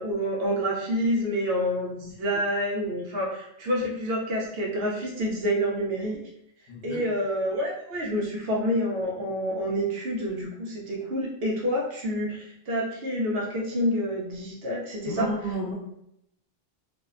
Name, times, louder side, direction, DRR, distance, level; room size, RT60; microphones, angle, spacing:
voice 1, 0.0-6.2 6.8-15.3, equal, 75° right, -3 dB, 0.8 m, -28 dB
voice 2, 6.7-7.0 15.0-15.7, right 1 dB, 65° left, -3 dB, 0.9 m, -31 dB
2.6 x 2.1 x 2.4 m, 0.78 s
omnidirectional pair, 1.0 m